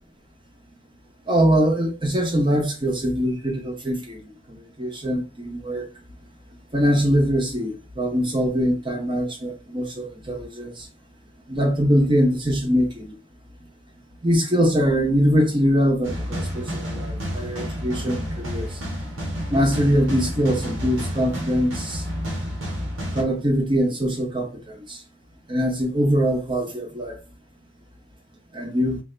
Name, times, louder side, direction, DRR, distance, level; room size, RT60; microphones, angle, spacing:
voice 1, 1.3-4.2 4.5-5.8 6.7-10.7 11.5-12.9 14.2-18.7 19.5-22.0 23.1-24.7 25.5-27.2 28.5-29.0, equal, 25° right, 0.9 m, -22 dB
sound 1, 16.0-23.2, equal, 75° right, 1.4 m, -30 dB
3.2 x 2.7 x 3.9 m
head